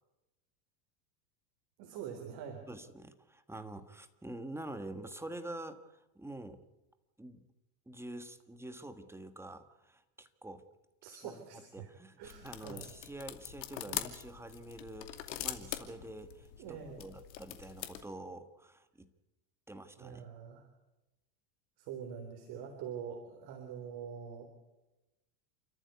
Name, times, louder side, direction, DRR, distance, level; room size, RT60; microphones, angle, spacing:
voice 1, 1.8-2.7 11.0-11.9 12.2-12.9 13.9-14.0 16.6-17.0 20.0-20.7 21.8-24.5, right 7 dB, 50° right, 4 dB, 3.9 m, -44 dB
voice 2, 2.7-6.6 7.2-7.4 7.9-10.6 11.1-11.4 11.7-19.1 19.7-20.2, right 1 dB, 5° right, 9 dB, 1.5 m, -47 dB
sound 1, 12.2-18.0, left 12 dB, 85° left, 2.7 m, -43 dB
29.0 x 14.0 x 8.3 m, 1.0 s
supercardioid pair, 125°, 49 cm